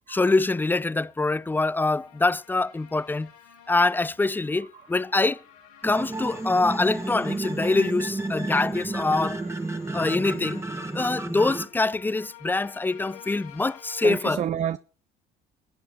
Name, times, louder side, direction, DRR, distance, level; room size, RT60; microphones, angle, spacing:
voice 1, 0.1-3.3 3.7-5.4 5.8-9.4 9.9-10.6 10.9-14.4, left 3 dB, 10° left, 0.5 m, -24 dB
sound 1, 0.9-14.2, left 11 dB, 85° left, 2.5 m, -50 dB
voice 2, 4.6-4.9 9.4-9.5 14.0-14.8, right 9 dB, 40° right, 0.6 m, -30 dB
sound 2, 5.8-11.7, right 2 dB, 15° right, 1.7 m, -31 dB
20.5 x 7.9 x 4.5 m
hypercardioid pair, 70°, 19 cm